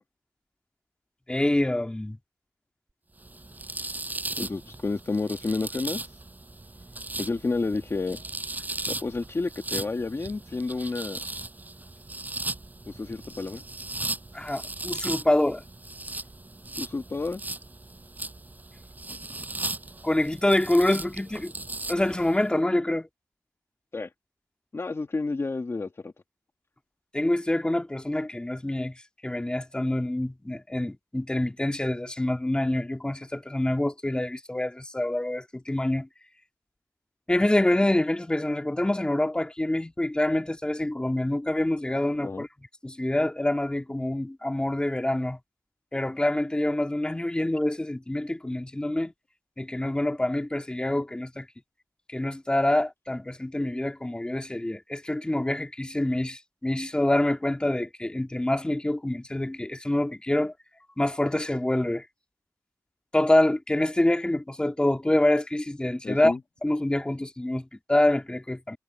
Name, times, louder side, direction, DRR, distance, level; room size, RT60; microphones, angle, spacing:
voice 1, 1.3-2.2 14.3-15.6 20.0-21.5 21.9-23.1 27.1-36.1 37.3-42.5 42.8-45.4 45.9-49.1 49.6-51.5 52.1-60.5 61.0-62.0 63.1-66.3 66.6-68.8, left 1 dB, 15° left, 2.1 m, -26 dB
sound 1, 3.2-22.4, right 2 dB, 25° right, 5.8 m, -37 dB
voice 2, 4.4-6.0 7.2-8.2 8.9-11.2 12.9-13.6 16.8-17.4 23.9-24.1 24.7-26.1 42.2-42.5 66.0-66.4, left 3 dB, 45° left, 1.6 m, -30 dB
wide cardioid pair, 115°, 6 cm